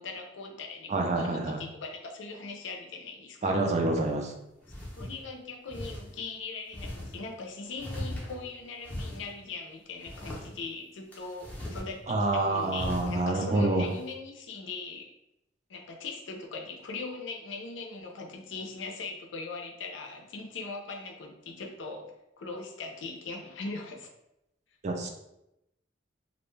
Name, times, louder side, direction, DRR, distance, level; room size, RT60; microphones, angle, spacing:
voice 1, 0.0-3.6 5.0-15.1 15.7-22.1 22.4-24.1, left 3 dB, 80° left, 2 dB, 0.5 m, -40 dB
voice 2, 0.9-1.6 3.4-4.3 12.1-13.9 24.8-25.1, right 2 dB, 40° right, 3 dB, 0.4 m, -27 dB
sound 1, 4.1-4.2 4.6-5.1 5.7-6.0 6.7-7.1 7.8-8.5 8.8-9.3 10.0-10.5 11.1-11.9 12.2-12.3 12.7-13.2, left 1 dB, 10° left, 0.6 m, -38 dB
2.4 x 2.2 x 3.1 m, 0.85 s
head